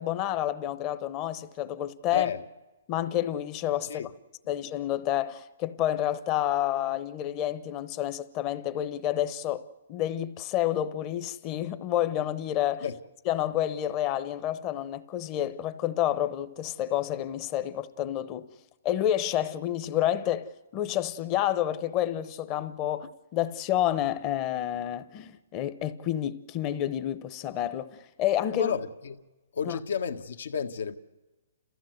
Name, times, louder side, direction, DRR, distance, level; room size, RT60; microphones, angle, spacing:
voice 1, 0.0-2.3 2.9-4.1 4.5-12.9 13.3-18.5 18.8-28.7 29.6-29.8, left 12 dB, 25° left, 0.9 m, -29 dB
voice 2, 2.1-2.4 3.8-4.1 12.8-13.0 28.5-29.2 29.5-31.0, left 7 dB, 75° left, 1.6 m, -31 dB
30.0 x 14.5 x 8.0 m
hypercardioid pair, 160°, 0 cm